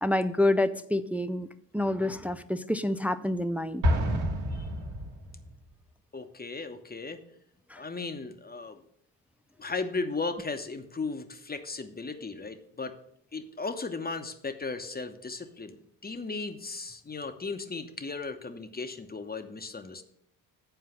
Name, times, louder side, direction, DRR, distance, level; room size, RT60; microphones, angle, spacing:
voice 1, 0.0-3.8 7.7-7.8, left 1 dB, 5° right, 12 dB, 0.4 m, -28 dB
Explosion, 3.8-5.6, equal, 85° right, 1.4 m, -28 dB
voice 2, 6.1-7.2 7.7-8.8 9.6-13.0 13.3-20.0, left 3 dB, 20° left, 8 dB, 1.0 m, -36 dB
8.0 x 4.6 x 7.3 m, 0.71 s
hypercardioid pair, 50°, 45 cm